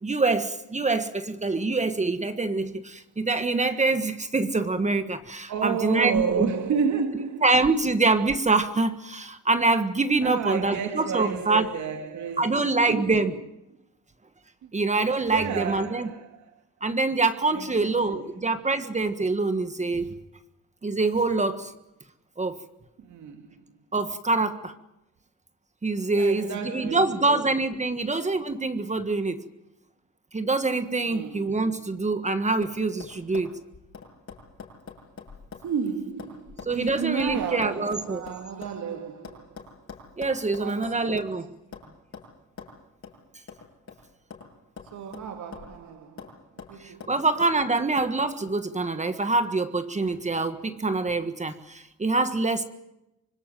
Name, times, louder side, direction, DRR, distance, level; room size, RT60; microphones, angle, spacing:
voice 1, 0.0-6.5 7.4-11.6 12.4-13.3 14.7-16.1 16.8-20.1 20.8-21.7 22.4-22.6 23.9-24.7 25.8-29.4 30.3-33.6 36.7-38.2 40.2-41.5 46.8-52.6, right 3 dB, 25° right, 1.6 m, -25 dB
voice 2, 5.5-7.5 10.2-13.2 14.6-14.7 15.3-16.6 17.5-18.4 23.0-23.7 26.1-27.5 31.0-31.6 35.6-39.7 40.6-41.2 44.9-46.4 46.7-47.2, right 6 dB, 70° right, 2.6 m, -32 dB
sound 1, 31.8-32.2 32.6-32.7 33.0-35.7 36.0-38.8 39.2-41.4 41.7-41.9 42.1-42.3 42.6-42.7 43.0-43.2 43.5-44.5 44.8-45.8 46.2-46.3 46.6-47.5 48.0-48.1, left 5 dB, 45° left, 7.9 m, -44 dB
25.5 x 20.5 x 9.2 m
cardioid pair, 90°, 30 cm